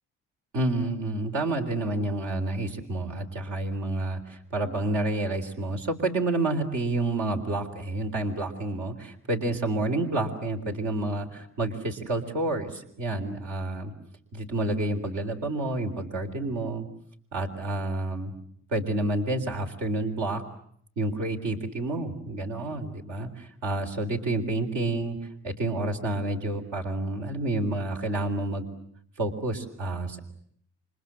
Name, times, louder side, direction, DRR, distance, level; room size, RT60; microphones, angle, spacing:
voice 1, 0.5-13.9 14.3-16.9 17.3-18.3 18.7-20.4 21.0-25.2 25.4-28.6 29.2-30.2, right 2 dB, 80° right, 3 dB, 3.9 m, -29 dB
29.5 x 26.0 x 7.6 m, 0.65 s
cardioid pair, 90°, 30 cm